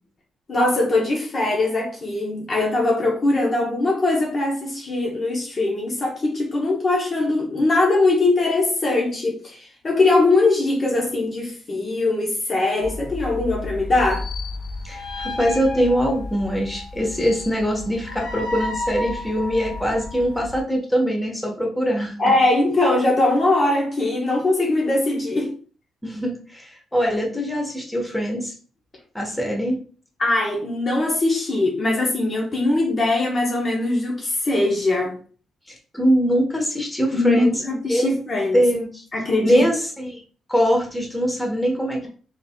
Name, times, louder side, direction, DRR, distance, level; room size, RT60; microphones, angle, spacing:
voice 1, 0.5-14.3 22.2-25.5 30.2-35.2 37.1-38.6 39.1-39.6, left 2 dB, 35° left, -1 dB, 1.0 m, -21 dB
sound 1, 12.8-20.6, left 2 dB, 90° left, 1.2 m, -32 dB
voice 2, 14.8-22.3 26.0-28.5 29.1-29.8 35.7-37.5 37.9-38.2 38.5-39.0 39.4-40.2 40.5-42.1, equal, 10° left, 0 dB, 1.2 m, -22 dB
4.1 x 3.9 x 2.3 m, 0.41 s
cardioid pair, 90°, 0 cm